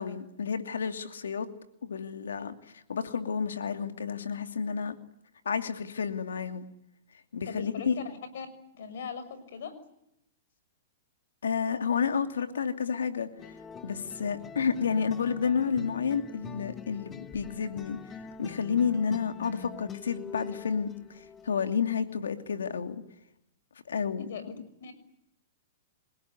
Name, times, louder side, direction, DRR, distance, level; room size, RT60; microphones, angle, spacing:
voice 1, 0.0-1.5 1.8-4.9 5.4-6.7 7.3-7.9 11.4-13.3 13.8-18.0 18.4-23.0 23.9-24.3, left 6 dB, 90° left, 8 dB, 2.6 m, -30 dB
voice 2, 7.5-8.5 8.7-9.7 24.2-24.9, left 6 dB, 70° left, 11 dB, 6.2 m, -40 dB
sound 1, 13.4-21.5, left 6 dB, 20° left, 1.3 m, -45 dB
28.5 x 18.0 x 9.8 m, 0.79 s
hypercardioid pair, 135°, 0 cm